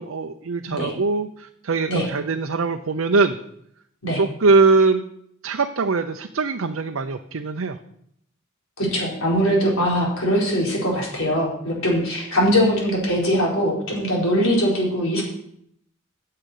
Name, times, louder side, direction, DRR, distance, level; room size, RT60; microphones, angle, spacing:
voice 1, 0.0-3.4 4.2-5.0 5.4-7.8, right 3 dB, 70° right, 5 dB, 0.6 m, -21 dB
voice 2, 8.8-15.2, equal, 75° left, -3 dB, 4.3 m, -21 dB
9.9 x 6.7 x 8.3 m, 0.73 s
head